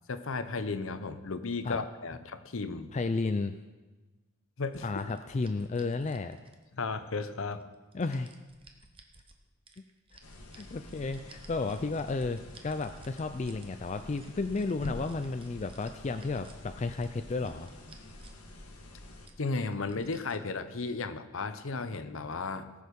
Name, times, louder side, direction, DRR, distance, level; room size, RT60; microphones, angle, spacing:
voice 1, 0.1-2.9 4.6-4.9 6.7-7.6 19.4-22.7, left 3 dB, 65° left, 11 dB, 0.7 m, -34 dB
voice 2, 2.9-3.6 4.8-6.4 7.9-8.3 10.1-10.2 10.6-17.7, left 3 dB, 30° left, 8 dB, 0.3 m, -33 dB
sound 1, 4.7-6.9 7.5-9.4 9.7-13.7 14.0-16.6 17.0-18.5 18.7-18.8 19.3-20.6, right 3 dB, 25° right, 0.8 m, -57 dB
sound 2, 10.2-19.3, left 1 dB, 80° left, 1.5 m, -47 dB
18.5 x 6.4 x 5.3 m, 1.2 s
head